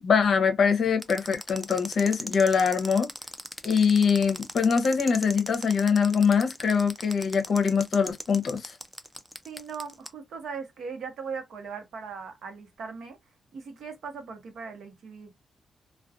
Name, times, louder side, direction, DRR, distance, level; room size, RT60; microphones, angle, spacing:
voice 1, 0.0-3.1 3.6-8.8, left 6 dB, 55° left, 0.7 m, -23 dB
sound 1, 1.0-10.1, equal, 5° right, 0.3 m, -38 dB
voice 2, 9.4-13.2 13.5-15.3, right 5 dB, 70° right, 0.8 m, -39 dB
2.4 x 2.2 x 2.5 m
wide cardioid pair, 135°, 0 cm